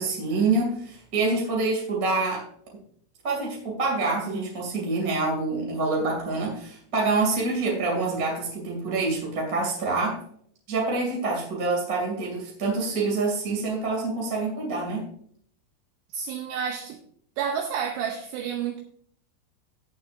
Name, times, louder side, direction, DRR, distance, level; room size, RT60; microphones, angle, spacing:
voice 1, 0.0-2.4 3.2-10.2 10.7-15.1, right 3 dB, 30° right, -2 dB, 1.8 m, -26 dB
voice 2, 16.1-17.0 17.4-18.8, right 7 dB, 80° right, 3 dB, 2.6 m, -30 dB
17.0 x 7.5 x 2.6 m, 0.63 s
omnidirectional pair, 5.7 m